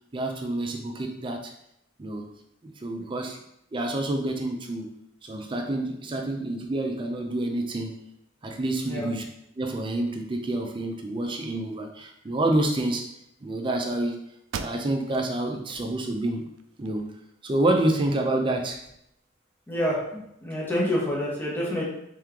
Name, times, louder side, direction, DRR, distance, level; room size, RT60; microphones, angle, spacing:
voice 1, 0.1-1.5 2.0-2.3 2.6-3.4 3.7-4.9 5.2-8.0 8.4-9.2 9.6-13.0 13.4-14.2 14.6-16.5 16.8-17.1 17.4-18.8, right 1 dB, 25° right, 3 dB, 0.4 m, -28 dB
sound 1, 14.5-15.3 15.8-15.9 16.4-17.3, right 6 dB, 90° right, 0.3 m, -39 dB
voice 2, 19.7-21.8, equal, 10° left, -5 dB, 1.0 m, -28 dB
3.3 x 3.1 x 3.6 m, 0.79 s
head